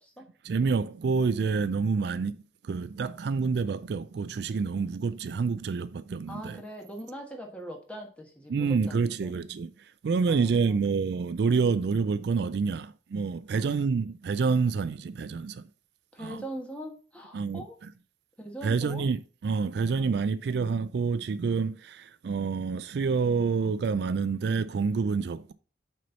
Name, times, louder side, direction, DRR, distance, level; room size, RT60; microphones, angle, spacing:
voice 1, 0.4-2.4 2.6-6.6 8.5-15.6 16.2-16.4 17.3-17.7 18.6-25.5, right 5 dB, 60° right, 0.3 m, -28 dB
voice 2, 6.3-9.3 10.3-10.7 13.5-13.7 16.1-17.8 18.4-19.0 20.0-20.1, right 1 dB, 5° left, 1.3 m, -41 dB
6.2 x 4.4 x 5.3 m
head